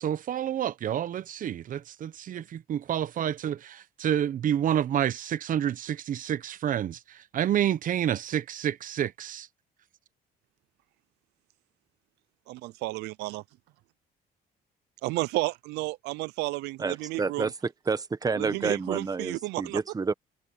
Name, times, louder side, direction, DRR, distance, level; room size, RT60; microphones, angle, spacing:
voice 1, 0.0-9.5, right 10 dB, 50° right, 1.0 m, -29 dB
voice 2, 12.5-13.4 15.0-17.5 18.4-19.8, right 20 dB, 85° right, 0.5 m, -32 dB
voice 3, 16.8-20.1, right 4 dB, 20° right, 1.3 m, -29 dB
cardioid pair, 110°, 17 cm